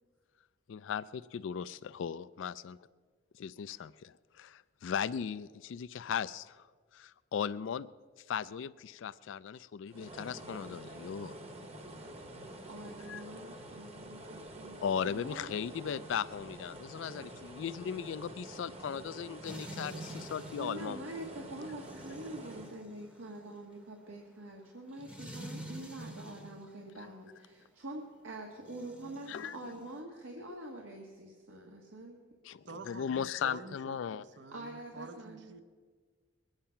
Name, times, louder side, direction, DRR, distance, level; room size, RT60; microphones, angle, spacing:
voice 1, 0.7-2.8 3.4-6.7 6.9-7.9 8.3-11.4 13.1-13.2 14.8-21.0 29.3-29.6 32.4-34.2, left 7 dB, 75° left, 0.3 m, -37 dB
sound 1, 9.9-22.8, right 1 dB, 30° right, 1.0 m, -48 dB
voice 2, 12.7-14.8 15.0-15.6 20.6-32.2 34.5-35.5, right 1 dB, 90° right, 1.5 m, -45 dB
sound 2, 19.4-26.7 28.6-30.0, right 1 dB, 5° right, 0.8 m, -48 dB
voice 3, 32.7-35.6, right 3 dB, 60° right, 0.7 m, -48 dB
21.5 x 8.9 x 5.7 m
head